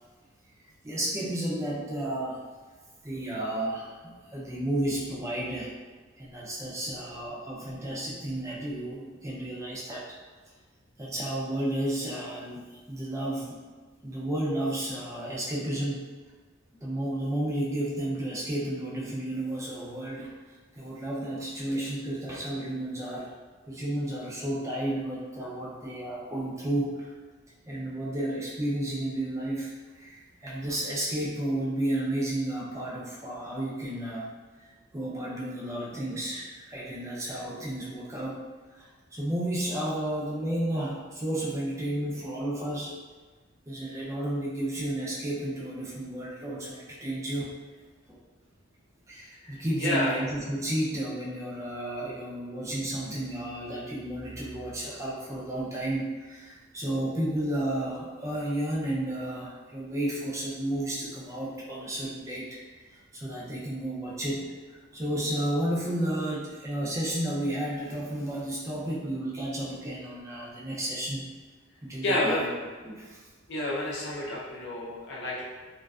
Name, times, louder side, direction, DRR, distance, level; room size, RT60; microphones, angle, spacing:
voice 1, 0.8-2.4 3.0-5.7 6.2-10.0 11.0-13.6 14.0-16.0 16.8-20.3 20.7-23.4 23.7-27.1 27.7-34.3 34.9-38.4 38.7-42.9 43.7-47.5 49.1-71.2 71.8-72.5 72.8-73.2, right 1 dB, 15° right, -5 dB, 0.4 m, -32 dB
voice 2, 49.4-50.1 72.0-72.5 73.5-75.4, left 1 dB, 60° left, -5 dB, 0.6 m, -29 dB
2.5 x 2.2 x 2.3 m, 1.3 s
head